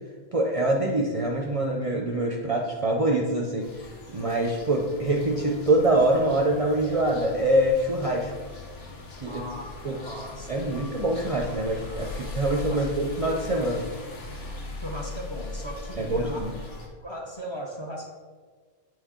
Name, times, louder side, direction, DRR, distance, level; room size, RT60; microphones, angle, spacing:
voice 1, 0.3-3.7 4.1-8.3 9.2-9.4 9.8-10.0 10.5-13.8 16.0-16.5, right 1 dB, 40° right, 0 dB, 0.5 m, -24 dB
sound 1, 3.6-16.9, left 3 dB, 75° left, 1.1 m, -39 dB
voice 2, 9.3-9.7 10.0-10.8 12.7-12.9 14.8-16.4 17.0-18.1, equal, 30° left, 0 dB, 0.6 m, -38 dB
8.2 x 3.2 x 3.6 m, 1.5 s
omnidirectional pair, 1.1 m